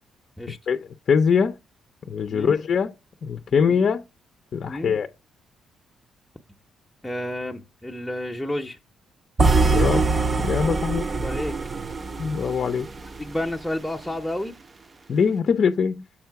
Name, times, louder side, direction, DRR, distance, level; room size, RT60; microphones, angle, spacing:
voice 1, 1.1-1.6 2.1-2.9 3.2-4.0 4.5-5.1 9.7-10.0 10.4-11.1 12.2-12.9 15.1-16.0, left 6 dB, 55° left, 0.5 m, -22 dB
voice 2, 7.0-8.8 11.1-11.5 13.2-14.6, left 1 dB, 5° left, 0.7 m, -31 dB
sound 1, 9.4-13.5, right 3 dB, 30° right, 0.5 m, -23 dB
7.4 x 4.5 x 4.6 m
cardioid pair, 90°, 0 cm